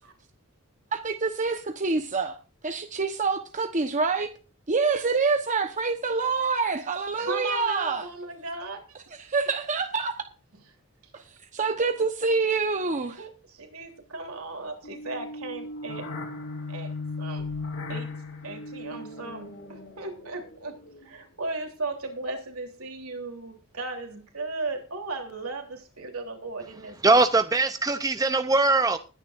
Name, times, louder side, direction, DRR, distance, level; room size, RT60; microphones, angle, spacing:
voice 1, 0.9-2.4 2.6-4.3 4.7-8.1 9.2-10.2 11.1-11.2 11.5-13.2, right 4 dB, 35° right, 1.1 m, -26 dB
voice 2, 7.2-8.8 13.2-16.1 16.7-17.5 17.9-18.1 18.4-20.8 21.0-27.2, right 3 dB, 70° right, 3.4 m, -36 dB
sound 1, 14.8-21.2, left 3 dB, 70° left, 3.4 m, -37 dB
voice 3, 27.0-29.0, right 3 dB, 15° right, 0.7 m, -21 dB
21.0 x 10.0 x 2.6 m
head